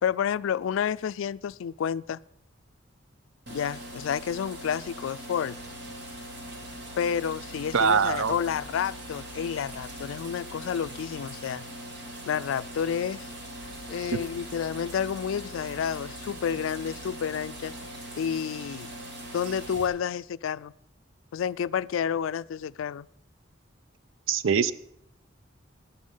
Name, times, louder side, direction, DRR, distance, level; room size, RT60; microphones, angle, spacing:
voice 1, 0.0-2.2 3.5-5.6 7.0-11.6 12.3-13.3 13.9-17.7 18.2-18.9 19.3-20.7 21.3-23.1, left 8 dB, 90° left, 18 dB, 0.3 m, -30 dB
sound 1, 3.5-19.9, equal, 60° right, 2.5 m, -41 dB
voice 2, 7.7-8.3 24.3-24.7, right 6 dB, 85° right, 16 dB, 0.5 m, -22 dB
11.5 x 10.0 x 5.5 m, 0.75 s
head